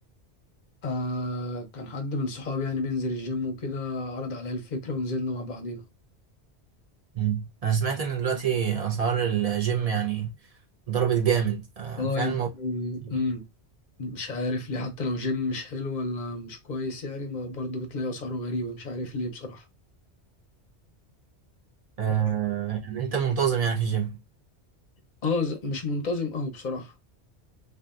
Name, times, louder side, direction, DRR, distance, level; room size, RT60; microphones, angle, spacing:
voice 1, 0.8-5.8 12.0-13.4 14.0-19.6 25.2-26.9, left 2 dB, 50° left, 0.7 m, -31 dB
voice 2, 7.1-10.3 10.9-12.5 13.0-13.1 22.0-24.2, right 8 dB, 40° right, 0.6 m, -26 dB
2.7 x 2.4 x 2.3 m
omnidirectional pair, 1.1 m